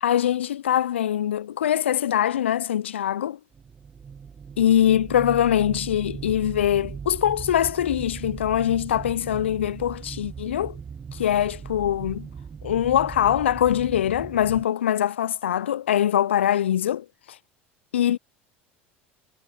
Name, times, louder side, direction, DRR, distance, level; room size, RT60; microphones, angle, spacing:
voice 1, 0.0-3.4 4.6-10.8 11.1-12.3 12.6-17.4 17.9-18.2, left 10 dB, 80° left, 0.5 m, -23 dB
sound 1, 3.5-14.7, right 6 dB, 25° right, 0.5 m, -38 dB
figure-of-eight pair, 70°, 6 cm